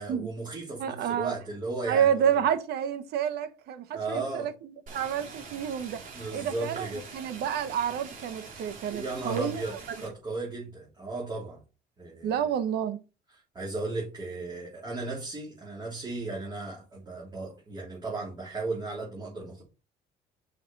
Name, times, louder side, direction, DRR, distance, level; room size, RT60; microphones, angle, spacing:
voice 1, 0.0-2.4 3.9-4.5 6.1-7.1 8.9-11.6 12.0-12.5 13.5-19.6, right 3 dB, 25° right, 3.5 m, -35 dB
voice 2, 0.8-1.3 1.9-6.0 6.3-9.6 12.2-13.0, right 9 dB, 75° right, 1.2 m, -29 dB
sound 1, 4.9-10.1, right 4 dB, 50° right, 3.5 m, -44 dB
6.0 x 5.7 x 5.5 m
cardioid pair, 110°, 17 cm